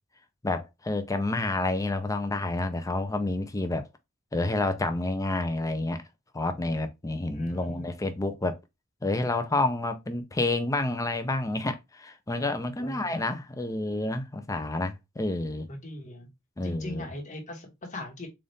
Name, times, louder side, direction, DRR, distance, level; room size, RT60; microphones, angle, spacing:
voice 1, 0.4-3.9 4.3-6.0 6.3-8.5 9.0-15.7 16.6-17.1, left 2 dB, 15° left, 0.5 m, -29 dB
voice 2, 7.3-7.9 12.8-13.3 15.7-16.3 16.6-18.3, left 1 dB, 35° left, 1.2 m, -40 dB
4.0 x 2.5 x 3.4 m
head